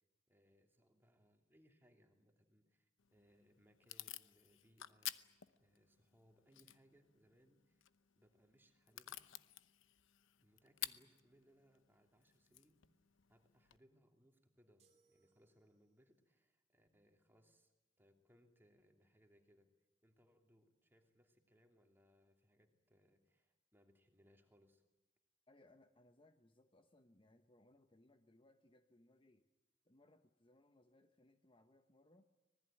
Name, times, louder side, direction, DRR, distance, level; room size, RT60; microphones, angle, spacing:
voice 1, 0.3-7.9 8.2-9.3 10.4-12.8 13.3-17.7 18.0-19.7 20.0-24.8, equal, 10° right, 3 dB, 2.9 m, -72 dB
Packing tape duct tape / Tearing, 3.0-13.8, left 13 dB, 80° left, 0.9 m, -53 dB
sound 1, 14.8-16.2, right 5 dB, 35° right, 2.8 m, -78 dB
voice 2, 25.5-29.5 29.8-32.3, left 1 dB, 25° left, 7 dB, 1.0 m, -69 dB
25.5 x 20.0 x 9.1 m, 1.0 s
head